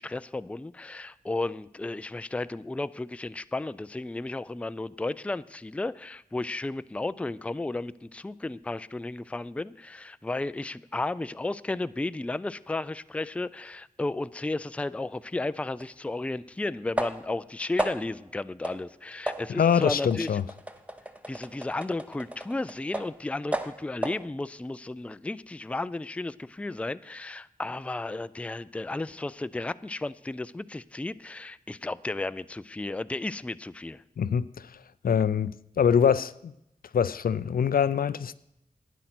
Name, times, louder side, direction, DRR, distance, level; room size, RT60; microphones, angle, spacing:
voice 1, 0.0-20.3 21.3-34.0, left 2 dB, 10° left, 0.3 m, -33 dB
sound 1, 15.8-15.9 17.0-17.4 17.8-18.2 18.6-18.9 19.3-23.2 23.5-24.3, right 1 dB, 10° right, 0.9 m, -34 dB
voice 2, 19.5-20.4 34.2-36.5 36.9-38.3, left 7 dB, 75° left, 0.4 m, -24 dB
12.0 x 9.3 x 5.9 m
wide cardioid pair, 70°, 15 cm